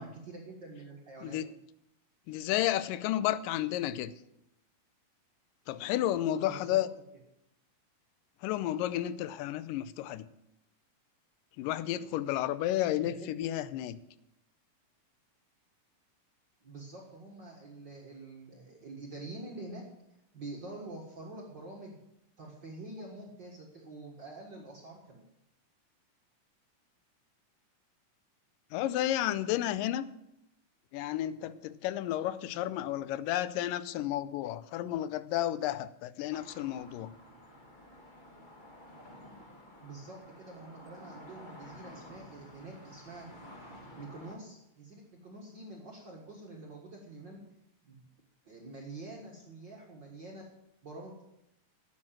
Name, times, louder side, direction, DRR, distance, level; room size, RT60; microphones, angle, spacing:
voice 1, 0.0-1.4 6.3-6.8 13.0-13.3 16.6-19.8 20.3-22.0 22.4-25.2 39.8-43.3 43.9-47.4 47.8-48.0 48.5-50.4 50.8-51.2, right 2 dB, 45° right, 1.7 m, -46 dB
voice 2, 2.3-4.1 5.7-6.9 8.4-10.3 11.6-14.0 28.7-30.1 30.9-37.2, left 13 dB, 85° left, 2.2 m, -32 dB
sound 1, 36.3-44.4, left 1 dB, 35° left, 0.7 m, -52 dB
12.0 x 7.8 x 7.4 m
omnidirectional pair, 3.8 m